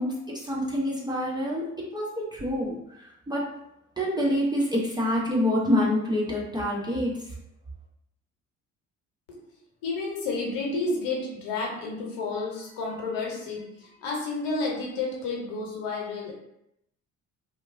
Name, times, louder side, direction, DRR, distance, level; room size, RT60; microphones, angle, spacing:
voice 1, 0.0-3.6 4.0-7.3, left 1 dB, 10° right, -4 dB, 0.6 m, -27 dB
voice 2, 9.8-16.3, left 3 dB, 60° left, -2 dB, 0.9 m, -31 dB
2.9 x 2.2 x 2.4 m, 0.80 s
figure-of-eight pair, 50°, 39 cm